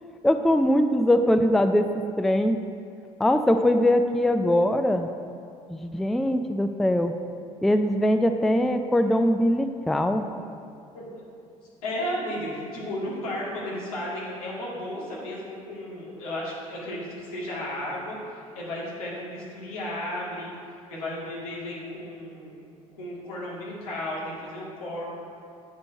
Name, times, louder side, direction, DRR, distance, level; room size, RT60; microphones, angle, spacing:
voice 1, 0.2-1.9 2.2-2.6 3.2-5.1 5.7-7.1 7.6-10.3, left 1 dB, ahead, 7 dB, 0.4 m, -22 dB
voice 2, 11.8-18.2 18.5-20.5 20.9-22.6 22.9-25.0, left 1 dB, 75° left, -5 dB, 1.9 m, -34 dB
8.3 x 5.2 x 4.5 m, 2.4 s
figure-of-eight pair, 60°, 19 cm